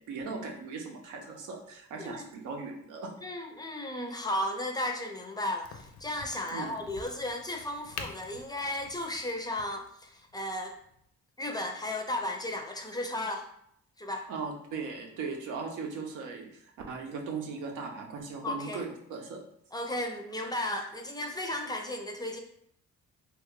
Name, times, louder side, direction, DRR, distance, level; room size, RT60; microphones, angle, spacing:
voice 1, 0.0-3.1 6.5-6.7 14.3-19.4, right 4 dB, 90° right, 2 dB, 0.7 m, -38 dB
voice 2, 2.0-2.3 3.2-10.7 11.4-13.5 14.0-14.3 18.4-18.8 19.7-22.4, left 1 dB, 15° left, 3 dB, 0.4 m, -34 dB
Crack, 5.6-11.1, left 5 dB, 65° left, 0.5 m, -47 dB
2.9 x 2.2 x 3.6 m, 0.71 s
cardioid pair, 90°, 30 cm